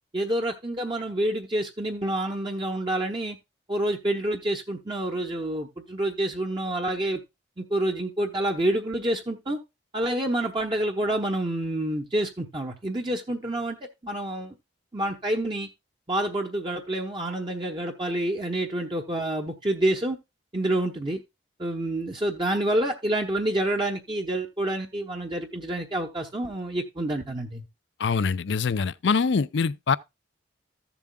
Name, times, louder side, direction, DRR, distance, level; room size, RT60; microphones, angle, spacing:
voice 1, 0.1-3.4 3.7-7.2 7.6-9.6 9.9-13.8 14.0-14.5 14.9-15.7 16.1-20.2 20.5-21.2 21.6-27.6, right 1 dB, 25° right, 0.9 m, -28 dB
voice 2, 28.0-30.0, left 5 dB, 65° left, 0.5 m, -24 dB
14.5 x 7.1 x 2.3 m
head